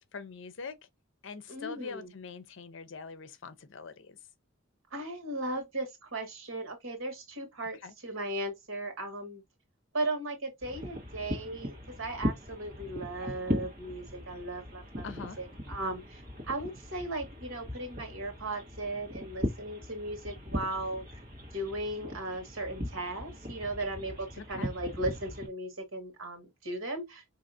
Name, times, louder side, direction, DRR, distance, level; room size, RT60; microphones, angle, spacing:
voice 1, 0.1-0.8 1.2-4.2 7.8-7.9 15.0-15.4 24.4-24.7, left 4 dB, 65° left, 0.6 m, -43 dB
voice 2, 1.5-2.1 4.9-9.4 9.9-21.2 21.5-27.2, right 2 dB, 80° right, 1.5 m, -37 dB
sound 1, 10.6-25.5, equal, 40° right, 1.4 m, -39 dB
4.6 x 2.8 x 2.6 m
head